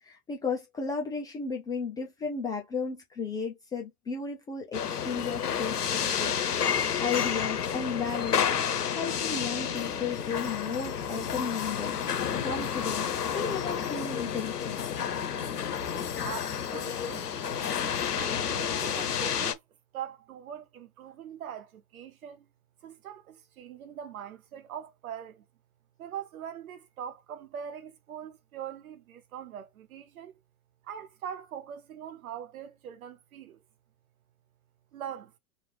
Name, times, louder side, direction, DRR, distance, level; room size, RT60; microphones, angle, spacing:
voice 1, 0.0-14.8, left 5 dB, 10° left, 0.4 m, -34 dB
sound 1, 4.7-19.5, left 8 dB, 85° left, 0.8 m, -30 dB
sound 2, 8.4-19.5, left 11 dB, 40° left, 1.2 m, -47 dB
voice 2, 16.2-17.5 18.2-19.6 19.9-22.5 22.8-25.4 26.0-30.3 30.8-33.6 34.9-35.4, right 9 dB, 65° right, 1.0 m, -42 dB
3.1 x 2.6 x 3.3 m
figure-of-eight pair, 95°, 46 cm